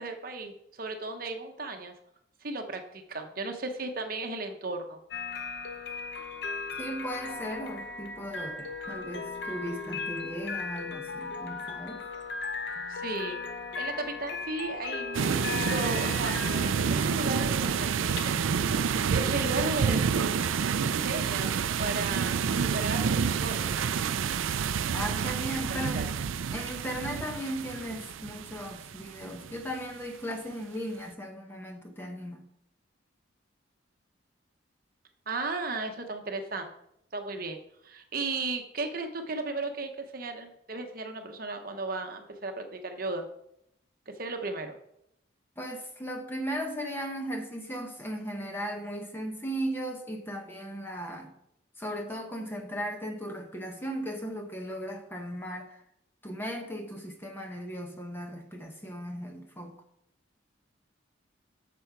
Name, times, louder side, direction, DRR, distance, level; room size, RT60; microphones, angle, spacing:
voice 1, 0.0-1.9 2.4-5.0 12.9-13.4 13.8-16.6 16.9-18.4 19.1-20.0 21.0-23.8 25.9-26.1 35.3-36.7 37.1-43.3 44.2-44.8, right 3 dB, 45° right, 5 dB, 0.9 m, -35 dB
sound 1, 5.1-24.1, left 4 dB, 55° left, 0.8 m, -38 dB
voice 2, 6.8-12.0 24.9-26.0 26.5-32.4 45.6-51.3 51.8-55.8 56.2-59.8, equal, 10° left, 3 dB, 0.8 m, -37 dB
sound 2, 15.1-29.7, right 6 dB, 80° right, 0.4 m, -29 dB
8.5 x 6.9 x 4.7 m, 0.76 s
head